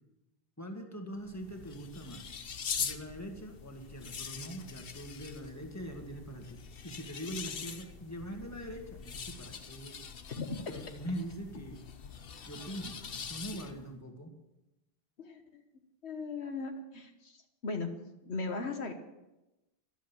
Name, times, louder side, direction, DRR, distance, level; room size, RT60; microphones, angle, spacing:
voice 1, 0.6-2.3 2.8-10.0 10.7-11.8 12.4-14.3, right 1 dB, 15° left, 3 dB, 2.0 m, -43 dB
sound 1, 1.2-13.9, left 6 dB, 60° left, 1.1 m, -43 dB
voice 2, 16.0-17.4 17.6-17.9 18.2-18.9, left 3 dB, 75° left, 6 dB, 1.6 m, -37 dB
13.0 x 12.0 x 7.2 m, 0.98 s
omnidirectional pair, 1.1 m